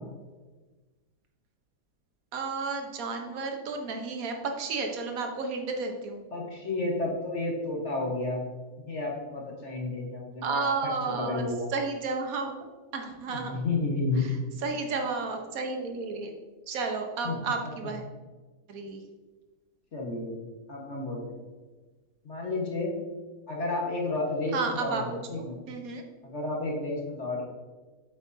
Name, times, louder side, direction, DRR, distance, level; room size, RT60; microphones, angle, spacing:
voice 1, 2.3-6.2 10.4-12.7 12.9-13.6 14.2-16.3 16.7-18.0 18.7-19.0 24.5-25.0 25.3-26.0, right 4 dB, 65° right, 3 dB, 1.5 m, -32 dB
voice 2, 6.3-8.4 8.8-10.5 10.8-11.7 13.3-14.2 17.2-17.4 17.8-17.9 19.9-20.3 20.7-21.4 22.2-22.9 23.5-25.6 26.2-27.4, left 2 dB, 50° left, -2 dB, 1.7 m, -31 dB
8.7 x 8.2 x 2.7 m, 1.3 s
omnidirectional pair, 1.6 m